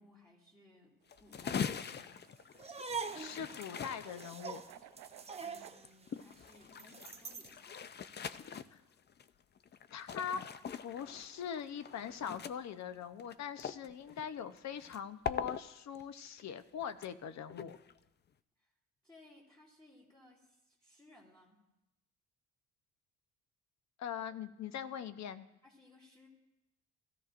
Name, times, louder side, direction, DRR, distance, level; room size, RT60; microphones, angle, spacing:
voice 1, 0.0-2.2 5.4-7.9 18.6-18.7 19.0-21.6 25.6-26.3, left 2 dB, 15° left, -5 dB, 2.9 m, -62 dB
sound 1, 1.0-5.8, right 13 dB, 90° right, 0.5 m, -57 dB
sound 2, 1.1-12.7 12.9-15.0 15.2-15.6 16.0-16.5 16.8-17.1 17.5-18.0, left 7 dB, 35° left, 0.5 m, -43 dB
sound 3, 2.5-7.6, right 5 dB, 20° right, 0.7 m, -44 dB
voice 2, 3.1-4.6 8.7-8.8 9.9-10.4 10.8-17.8 24.0-25.4, left 8 dB, 65° left, 11 dB, 0.8 m, -42 dB
16.5 x 13.5 x 2.5 m, 0.92 s
cardioid pair, 90°, 30 cm